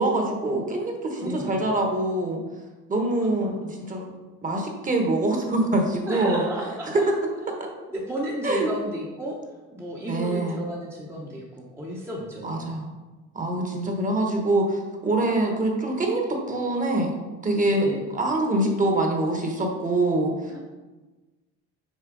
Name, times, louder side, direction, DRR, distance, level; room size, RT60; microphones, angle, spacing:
voice 1, 0.0-2.4 2.9-4.0 4.4-6.4 6.9-7.0 8.4-8.7 10.1-10.6 12.4-12.9 13.3-17.1 17.4-17.9 18.1-20.3, right 2 dB, 25° right, 2 dB, 1.2 m, -24 dB
voice 2, 1.2-1.6 3.4-3.7 6.1-7.1 7.9-9.4 9.7-12.8 13.4-13.8 17.7-18.0 20.5-20.6, equal, 10° right, -4 dB, 0.9 m, -33 dB
6.5 x 4.4 x 3.9 m, 1.2 s
cardioid pair, 115°, 31 cm